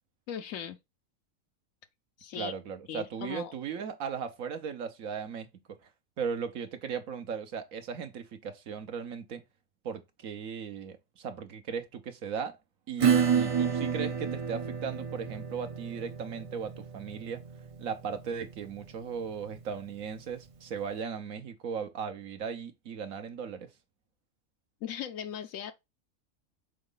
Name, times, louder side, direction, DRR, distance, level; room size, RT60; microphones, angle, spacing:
voice 1, 0.3-0.8 2.2-2.5 2.9-3.5 24.8-25.7, left 9 dB, 80° left, 1.0 m, -38 dB
voice 2, 2.3-5.5 6.2-9.4 9.8-12.6 12.9-17.4 17.8-23.7, right 6 dB, 85° right, 1.4 m, -37 dB
Acoustic guitar / Strum, 13.0-20.2, right 7 dB, 55° right, 0.3 m, -30 dB
6.4 x 4.0 x 3.8 m
omnidirectional pair, 1.4 m